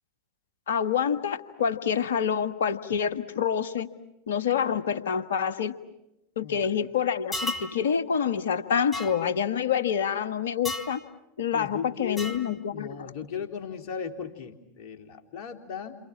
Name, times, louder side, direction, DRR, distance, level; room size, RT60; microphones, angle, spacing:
voice 1, 0.7-3.9 4.3-5.7 6.4-11.0 11.4-12.9, left 7 dB, 70° left, 12 dB, 1.5 m, -27 dB
sound 1, 7.3-7.7 8.9-9.1 10.7-10.9 12.2-12.5, left 1 dB, 15° left, 3.8 m, -32 dB
voice 2, 11.5-12.3 12.7-16.0, left 7 dB, 50° left, 5 dB, 3.4 m, -37 dB
29.0 x 28.0 x 7.3 m, 0.89 s
figure-of-eight pair, 80°, 0 cm